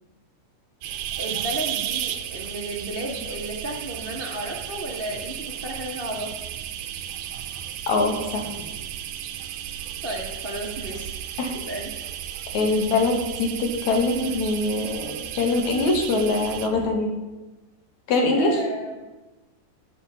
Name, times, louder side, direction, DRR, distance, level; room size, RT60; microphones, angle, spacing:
sound 1, 0.8-16.9, right 10 dB, 80° right, 2.1 m, -34 dB
voice 1, 0.9-6.3 10.0-11.1 11.7-11.9 18.4-18.9, right 1 dB, 35° right, -1 dB, 0.8 m, -33 dB
voice 2, 7.9-8.4 11.4-11.5 12.5-17.1 18.1-18.5, left 3 dB, 60° left, 2 dB, 2.9 m, -23 dB
15.5 x 6.4 x 5.7 m, 1.1 s
omnidirectional pair, 3.7 m